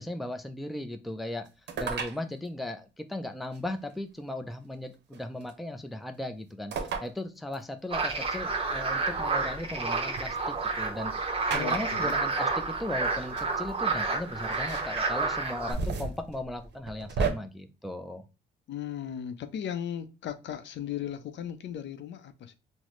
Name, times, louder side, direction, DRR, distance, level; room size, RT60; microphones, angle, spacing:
voice 1, 0.0-1.5 1.8-6.7 7.0-11.1 11.5-18.2, left 1 dB, ahead, 0.4 m, -37 dB
sound 1, 1.7-2.2 3.5-3.6 5.1-5.5 6.7-7.1 7.5-7.6 9.0-10.2 11.5-12.1 13.1-13.2 13.4-13.5 14.5-15.1 15.5-17.3, right 5 dB, 60° right, 0.7 m, -33 dB
sound 2, 7.9-15.7, right 4 dB, 30° right, 0.8 m, -30 dB
voice 2, 11.5-12.2 18.7-22.6, left 9 dB, 65° left, 0.5 m, -37 dB
3.9 x 2.1 x 3.0 m
cardioid pair, 90°, 20 cm